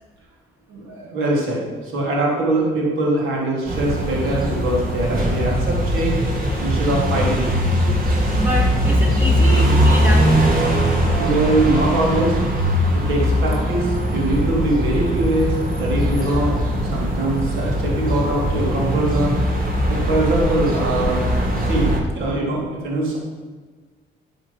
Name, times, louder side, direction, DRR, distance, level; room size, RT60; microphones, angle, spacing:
voice 1, 0.7-6.2 6.6-7.5 11.2-12.4 12.9-16.6 16.8-19.4 19.9-21.2 21.6-23.2, right 1 dB, 90° right, -3 dB, 3.8 m, -22 dB
sound 1, 3.7-22.0, equal, 45° right, 3.0 m, -20 dB
voice 2, 8.4-10.6, left 1 dB, 10° right, -1 dB, 3.0 m, -27 dB
12.5 x 7.7 x 5.9 m, 1.4 s
cardioid pair, 90°, 20 cm